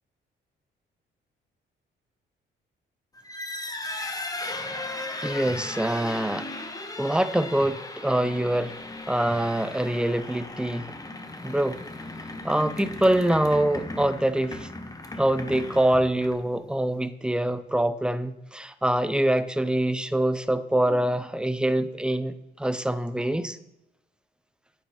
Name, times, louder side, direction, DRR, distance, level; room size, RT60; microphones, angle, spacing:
sound 1, 3.2-16.6, left 2 dB, 20° left, 1.2 m, -37 dB
voice 1, 5.2-6.5 7.0-8.7 9.1-10.9 11.4-11.8 12.4-14.7 15.2-23.6, right 1 dB, 5° right, 12 dB, 0.6 m, -25 dB
9.3 x 8.9 x 3.4 m, 0.91 s
cardioid pair, 90°, 20 cm